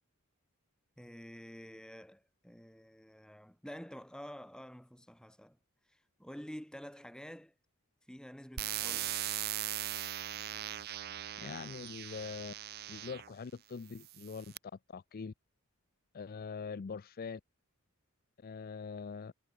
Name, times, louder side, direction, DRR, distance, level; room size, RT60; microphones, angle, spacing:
voice 1, 1.0-5.6 5.8-7.5 8.1-9.2, equal, 5° left, 2.3 m, -49 dB
sound 1, 8.6-13.3 14.0-14.6, right 13 dB, 45° right, 0.5 m, -39 dB
voice 2, 11.4-12.5 12.9-14.5 14.9-15.3 16.1-17.4 18.4-19.3, left 5 dB, 45° left, 0.4 m, -43 dB
head